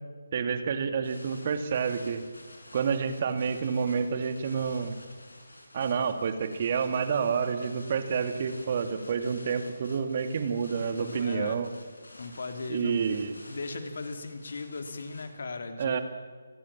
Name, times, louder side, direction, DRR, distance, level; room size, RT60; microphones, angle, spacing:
voice 1, 0.3-2.2 2.7-4.9 5.7-11.7 12.7-13.3 15.8-16.0, right 6 dB, 40° right, 8 dB, 2.3 m, -29 dB
sound 1, 1.0-15.3, left 1 dB, 75° left, 6.8 m, -51 dB
voice 2, 10.9-11.7 12.2-13.2 13.5-16.0, left 3 dB, 55° left, 7 dB, 3.2 m, -37 dB
29.0 x 19.5 x 7.4 m, 1.6 s
figure-of-eight pair, 145°, 0 cm